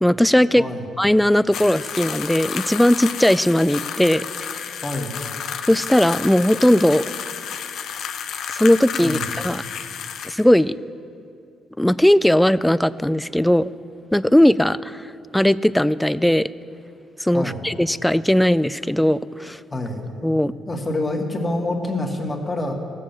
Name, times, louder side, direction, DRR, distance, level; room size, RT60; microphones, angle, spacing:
voice 1, 0.0-0.6 1.0-4.3 4.5-4.7 5.7-7.0 8.5-9.2 9.4-9.6 10.2-10.7 11.8-13.7 14.1-16.5 17.2-19.6 20.2-20.5, left 1 dB, 5° left, 16 dB, 0.4 m, -18 dB
sound 1, 1.5-10.5, left 7 dB, 70° left, 0.8 m, -31 dB
voice 2, 4.8-5.3 9.0-9.3 17.3-17.6 19.7-20.1 20.7-22.7, left 1 dB, 20° left, 1 dB, 2.0 m, -26 dB
17.5 x 7.5 x 7.4 m, 2.4 s
cardioid pair, 90°, 0 cm